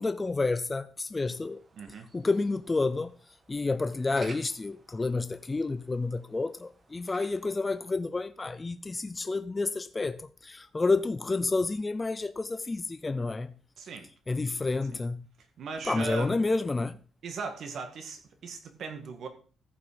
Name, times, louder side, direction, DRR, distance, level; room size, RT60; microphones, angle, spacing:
voice 1, 0.0-1.6 2.1-3.1 3.5-13.5 14.3-15.3 15.8-17.0, left 3 dB, 15° left, 0.4 m, -30 dB
sound 1, 1.2-7.9, right 3 dB, 25° right, 1.4 m, -55 dB
voice 2, 1.8-2.1 13.8-14.1 15.6-16.4 17.2-19.3, right 4 dB, 50° right, 1.9 m, -38 dB
14.5 x 6.0 x 5.1 m
cardioid pair, 160°, 0 cm